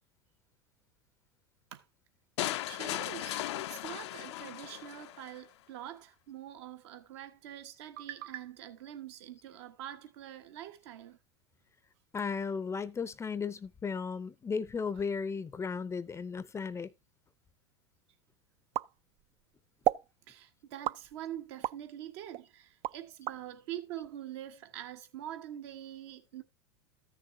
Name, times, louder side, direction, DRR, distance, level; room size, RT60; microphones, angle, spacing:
sound 1, 2.4-5.4, left 14 dB, 75° left, 0.6 m, -37 dB
voice 1, 2.6-11.2 20.3-26.4, right 11 dB, 70° right, 1.4 m, -44 dB
voice 2, 12.1-16.9, left 5 dB, 20° left, 0.6 m, -35 dB
sound 2, 18.7-19.4 19.8-20.1 20.8-21.8 22.3-23.4, right 14 dB, 45° right, 0.4 m, -33 dB
14.0 x 6.7 x 2.7 m
hypercardioid pair, 100°, 15 cm